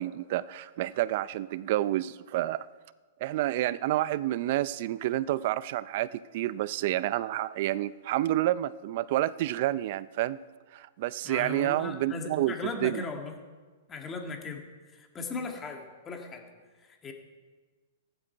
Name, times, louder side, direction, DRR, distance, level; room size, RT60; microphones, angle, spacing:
voice 1, 0.0-2.7 3.2-10.4 10.7-13.0, right 14 dB, 55° right, 18 dB, 0.5 m, -29 dB
voice 2, 11.2-13.3 13.9-14.6 14.9-16.5 16.8-17.1, left 4 dB, 20° left, 3 dB, 2.0 m, -37 dB
15.0 x 11.0 x 4.6 m, 1.4 s
hypercardioid pair, 130°, 0 cm